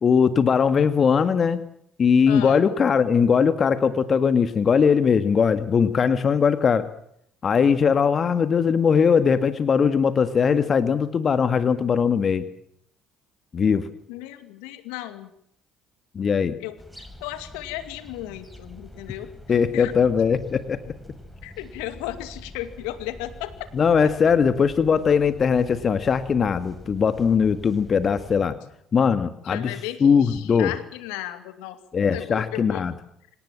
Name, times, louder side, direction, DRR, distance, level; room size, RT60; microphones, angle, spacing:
voice 1, 0.0-1.6 2.0-6.9 7.4-12.5 13.5-13.9 16.1-16.6 19.5-20.8 23.7-28.5 28.9-29.7 30.0-30.7 31.9-32.9, left 6 dB, 45° left, 12 dB, 1.7 m, -20 dB
voice 2, 2.3-2.6 14.1-15.3 16.6-20.1 21.4-23.7 29.4-31.8 32.1-32.9, left 14 dB, 75° left, 11 dB, 2.4 m, -35 dB
sound 1, 16.8-28.5, equal, ahead, 5.7 m, -45 dB
26.0 x 19.0 x 7.4 m, 0.72 s
hypercardioid pair, 55°, 0 cm